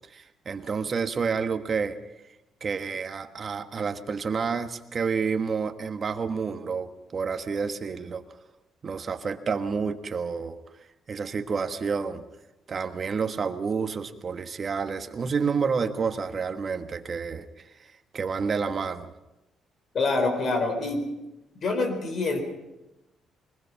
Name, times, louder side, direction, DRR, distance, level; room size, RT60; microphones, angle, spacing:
voice 1, 0.1-2.0 2.6-8.2 8.8-10.6 11.1-12.2 12.7-17.7 18.1-19.1, right 5 dB, 35° right, 7 dB, 1.4 m, -29 dB
voice 2, 19.9-21.0 21.6-22.4, left 3 dB, 45° left, 6 dB, 4.4 m, -25 dB
22.5 x 20.5 x 5.8 m, 0.97 s
cardioid pair, 145°, 0 cm